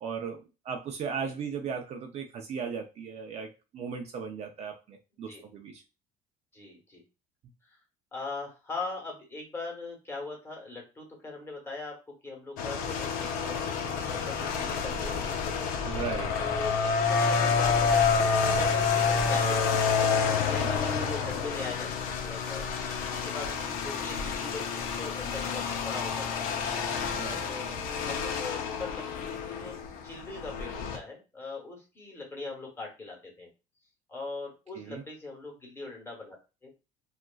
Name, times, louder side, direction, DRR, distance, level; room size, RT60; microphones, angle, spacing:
voice 1, 0.0-0.4 0.7-5.8 15.8-16.3 20.6-20.8 27.1-27.4 34.8-35.0, right 6 dB, 45° right, 3 dB, 0.5 m, -37 dB
voice 2, 6.5-7.0 7.6-7.8 8.1-15.7 16.4-19.9 20.3-22.6 23.1-26.4 27.4-27.7 28.1-28.9 29.3-29.7 30.0-33.5 34.1-36.4 36.6-36.7, left 3 dB, 15° left, 0 dB, 1.1 m, -41 dB
sound 1, 12.6-31.0, left 5 dB, 70° left, 0.5 m, -29 dB
2.9 x 2.4 x 2.3 m, 0.29 s
cardioid pair, 125°, 15 cm